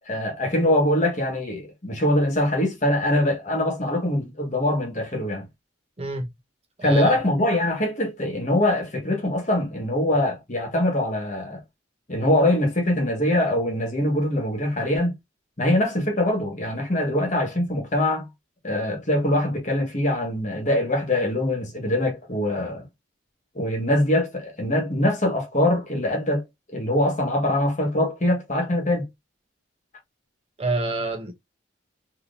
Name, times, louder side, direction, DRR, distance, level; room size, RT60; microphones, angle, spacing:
voice 1, 0.1-5.5 6.8-11.6 12.1-15.1 15.6-18.3 18.6-22.8 23.5-26.4 26.7-29.1, left 1 dB, 40° left, 1.2 m, -23 dB
voice 2, 6.0-6.3 6.8-7.1 30.6-31.3, right 2 dB, 30° right, 0.8 m, -27 dB
3.7 x 2.8 x 2.5 m
head